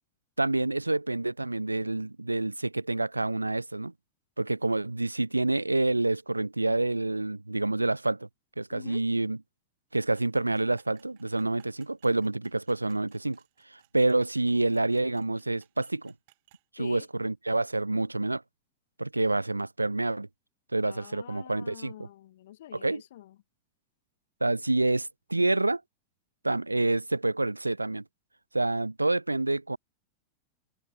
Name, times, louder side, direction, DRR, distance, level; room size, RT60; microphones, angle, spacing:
voice 1, 0.4-3.9 4.4-8.3 8.6-9.4 9.9-13.4 13.7-16.1 16.7-18.4 19.0-20.3 20.7-21.9 22.7-23.0 24.4-25.8 26.4-28.0 28.5-29.8, right 2 dB, 85° right, 0.3 m, -28 dB
voice 2, 8.7-9.0 14.5-15.3 16.8-17.1 20.8-23.4, left 13 dB, 55° left, 1.0 m, -47 dB
sound 1, 9.9-16.6, right 21 dB, 50° right, 2.2 m, -64 dB
figure-of-eight pair, 90°, 0 cm